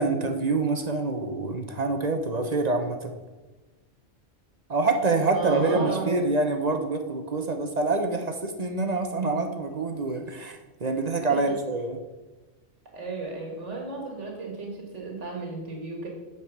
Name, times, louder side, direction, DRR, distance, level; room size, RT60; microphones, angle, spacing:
voice 1, 0.0-3.1 4.7-12.0, right 3 dB, 40° right, 5 dB, 0.8 m, -26 dB
voice 2, 5.3-6.2 11.3-11.6 12.9-16.1, right 3 dB, 80° right, 0 dB, 1.9 m, -34 dB
8.7 x 4.6 x 6.0 m, 1.2 s
omnidirectional pair, 1.2 m